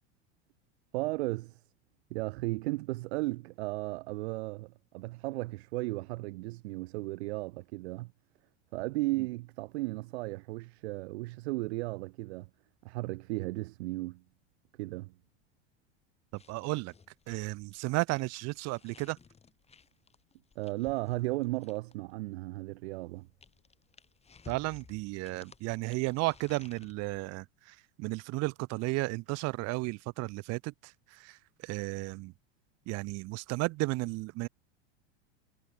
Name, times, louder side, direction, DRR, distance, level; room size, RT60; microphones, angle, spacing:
voice 1, 0.9-1.6 2.1-8.1 8.7-12.5 12.8-14.2 14.8-15.1 20.6-23.3, right 21 dB, 75° right, 0.7 m, -35 dB
sound 1, 16.3-22.1 23.0-26.9, left 5 dB, 20° left, 4.9 m, -57 dB
voice 2, 16.3-16.9 17.3-19.2 24.5-32.3 32.9-34.5, right 23 dB, 50° right, 1.1 m, -34 dB
supercardioid pair, 120°, 33 cm